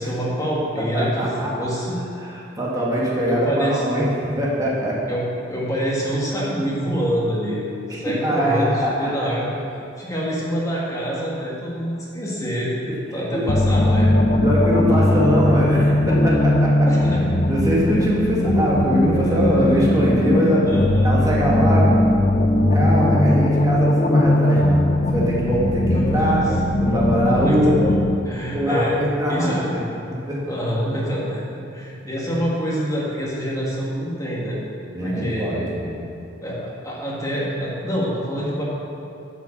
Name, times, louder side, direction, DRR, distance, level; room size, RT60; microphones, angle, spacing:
voice 1, 0.0-2.0 3.3-4.0 5.1-7.6 7.9-9.5 10.0-12.7 13.1-14.1 16.9-17.2 19.2-19.8 20.7-21.1 25.9-26.4 27.4-28.0 28.2-29.0 29.3-29.6 30.4-31.4 31.7-34.6 35.0-35.7 36.4-38.6, equal, 20° left, -5 dB, 1.9 m, -26 dB
voice 2, 0.8-1.7 2.2-5.0 8.1-9.1 12.8-12.9 13.3-13.4 14.4-16.9 17.5-20.7 21.0-22.0 22.7-26.4 26.8-27.7 28.5-29.8 30.3-30.4 34.9-36.0, equal, 20° right, -6 dB, 1.9 m, -22 dB
sound 1, 13.5-28.1, left 1 dB, 40° left, 0.7 m, -19 dB
11.0 x 5.9 x 7.2 m, 2.7 s
head